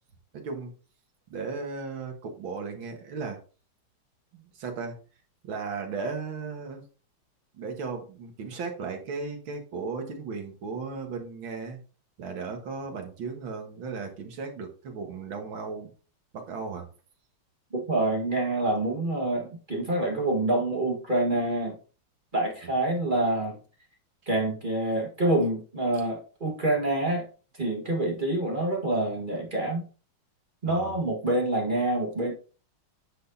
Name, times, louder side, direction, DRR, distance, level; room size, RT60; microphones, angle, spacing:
voice 1, 0.3-0.7 1.3-3.4 4.3-5.0 5.4-6.9 7.5-11.8 12.2-15.9 16.3-16.9 30.7-31.0, right 4 dB, 65° right, 3 dB, 2.2 m, -36 dB
voice 2, 17.7-21.8 22.3-23.6 24.3-27.3 27.6-29.8 30.6-32.3, right 2 dB, 25° right, 0 dB, 1.5 m, -26 dB
9.3 x 6.1 x 2.7 m, 0.37 s
omnidirectional pair, 2.4 m